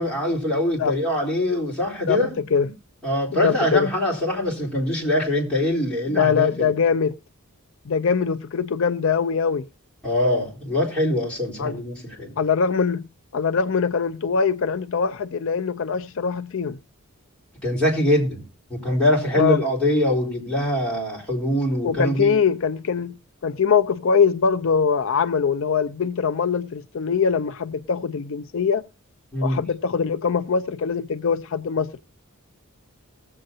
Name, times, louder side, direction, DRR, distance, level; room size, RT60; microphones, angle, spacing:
voice 1, 0.0-2.4 3.0-6.7 10.0-12.4 17.6-18.4 18.7-22.4 29.3-29.6, left 1 dB, 5° left, 4.2 m, -23 dB
voice 2, 3.4-3.9 6.1-7.1 7.9-9.7 11.6-11.8 12.4-13.0 13.3-16.8 19.3-19.6 21.8-23.1 23.4-28.8 29.4-32.0, left 6 dB, 60° left, 0.5 m, -22 dB
19.5 x 7.7 x 2.7 m
head